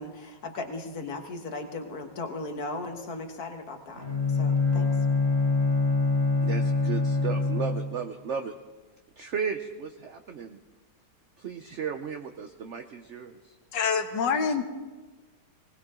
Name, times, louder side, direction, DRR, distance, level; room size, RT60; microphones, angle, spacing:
voice 1, 0.0-4.9, left 2 dB, 60° left, 4 dB, 1.9 m, -37 dB
Bowed string instrument, 3.9-8.0, left 3 dB, 35° left, 3.0 m, -25 dB
voice 2, 6.4-8.5 9.2-10.6 11.4-13.5, right 6 dB, 55° right, 6 dB, 0.8 m, -35 dB
voice 3, 13.7-14.6, left 6 dB, 85° left, 7 dB, 1.7 m, -26 dB
19.5 x 19.5 x 3.8 m, 1.3 s
omnidirectional pair, 1.9 m